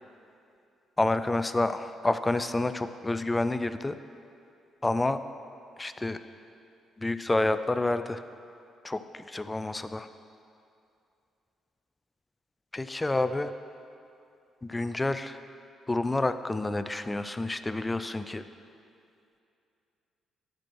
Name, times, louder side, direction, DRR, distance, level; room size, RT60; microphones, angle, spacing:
voice 1, 1.0-4.0 4.8-5.2 5.8-6.2 7.0-8.2 8.8-10.1 12.7-13.5 14.6-15.4 15.9-18.4, left 2 dB, 15° left, 11 dB, 0.3 m, -29 dB
10.5 x 6.1 x 4.5 m, 2.6 s
cardioid pair, 90°, 0 cm